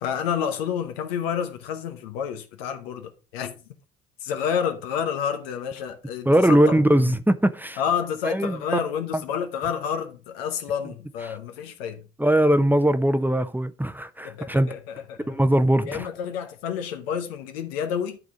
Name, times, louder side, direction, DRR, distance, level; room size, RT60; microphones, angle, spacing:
voice 1, 0.0-3.5 4.2-7.1 7.8-12.0 14.2-15.4 15.9-18.2, left 8 dB, 80° left, 1.0 m, -29 dB
voice 2, 6.3-7.8 8.2-8.6 12.2-14.7 15.3-16.1, right 1 dB, 5° right, 0.8 m, -20 dB
11.5 x 3.9 x 4.9 m
hypercardioid pair, 45°, 30 cm